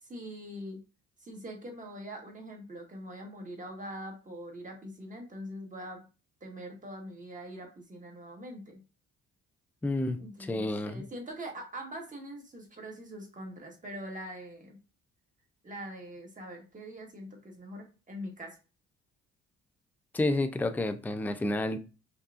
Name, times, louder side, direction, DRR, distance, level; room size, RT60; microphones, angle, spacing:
voice 1, 0.0-0.8 1.2-6.0 6.4-8.8 10.2-14.8 15.6-18.6, equal, 25° right, 1.5 m, -43 dB
voice 2, 9.8-11.0 20.1-21.8, left 2 dB, 5° left, 0.4 m, -30 dB
5.4 x 2.3 x 2.5 m
cardioid pair, 90°, 30 cm